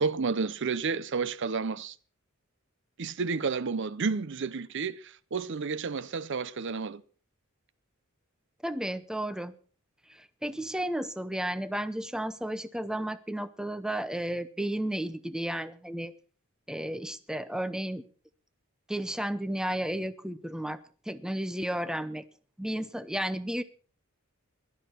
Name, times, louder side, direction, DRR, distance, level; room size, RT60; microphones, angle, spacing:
voice 1, 0.0-2.0 3.0-7.0, right 4 dB, 60° right, 0.6 m, -31 dB
voice 2, 8.6-9.5 10.1-16.1 16.7-18.0 18.9-20.8 21.1-22.2 22.6-23.6, right 1 dB, 5° right, 0.6 m, -33 dB
16.5 x 12.0 x 4.4 m
head